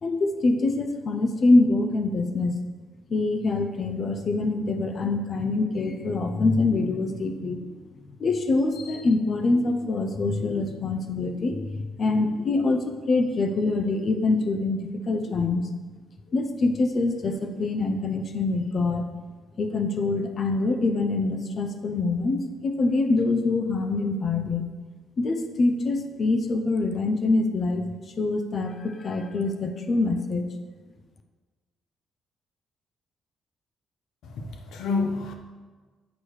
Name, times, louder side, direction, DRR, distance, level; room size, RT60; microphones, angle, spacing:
voice 1, 0.0-2.6 3.1-7.8 8.2-15.6 16.3-19.0 19.6-24.7 25.2-27.8 28.2-30.4, left 3 dB, 50° left, 6 dB, 0.5 m, -25 dB
voice 2, 34.2-35.3, left 4 dB, 80° left, 3 dB, 0.8 m, -29 dB
8.1 x 4.5 x 3.2 m, 1.4 s
cardioid pair, 90°, 0 cm